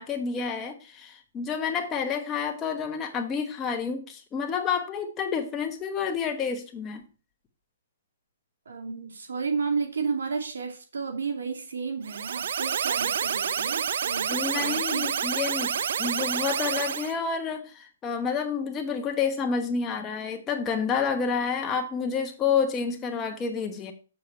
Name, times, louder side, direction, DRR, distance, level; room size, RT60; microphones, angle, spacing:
voice 1, 0.0-7.0 14.3-23.9, left 6 dB, 15° left, 4 dB, 1.1 m, -29 dB
voice 2, 8.7-15.1, right 5 dB, 90° right, 5 dB, 2.3 m, -32 dB
sound 1, 12.0-17.1, right 8 dB, 60° right, 0.5 m, -28 dB
7.0 x 6.5 x 4.4 m, 0.36 s
hypercardioid pair, 165°, 0 cm